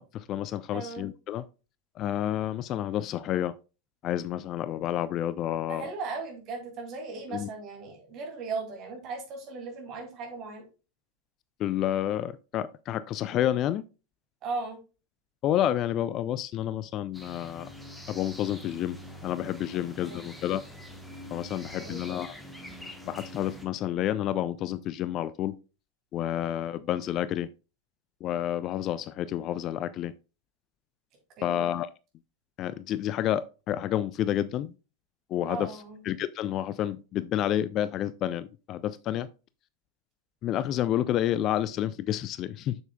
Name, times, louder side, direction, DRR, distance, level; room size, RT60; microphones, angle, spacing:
voice 1, 0.0-1.4 2.0-3.5 4.0-5.9 7.3-7.5 11.6-13.8 15.4-17.7 18.1-19.0 19.2-20.6 21.3-22.3 23.0-25.6 26.1-27.5 28.2-30.1 31.4-31.9 32.6-34.7 35.3-35.7 36.1-39.3 40.4-42.8, left 11 dB, 35° left, 0.3 m, -29 dB
voice 2, 0.7-1.1 5.7-10.7 14.4-14.8 19.7-20.3 21.7-22.0 31.4-31.7 35.5-36.0, right 4 dB, 35° right, 2.5 m, -37 dB
sound 1, 17.1-23.7, equal, 5° left, 1.1 m, -45 dB
7.8 x 6.8 x 2.3 m
figure-of-eight pair, 90°, 0 cm